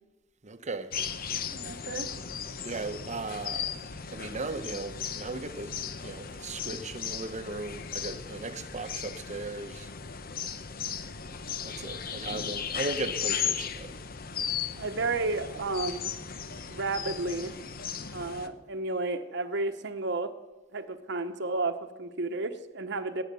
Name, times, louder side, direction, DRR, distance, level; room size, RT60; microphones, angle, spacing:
voice 1, 0.4-1.0 2.6-3.7 4.1-9.9 11.6-14.0, right 3 dB, 35° right, 0.9 m, -37 dB
sound 1, 0.9-18.5, left 7 dB, 50° left, 0.9 m, -36 dB
voice 2, 1.5-2.1 14.8-16.2 16.7-17.6 18.1-20.3 20.7-23.2, right 3 dB, 60° right, 1.0 m, -32 dB
18.0 x 10.5 x 6.9 m
head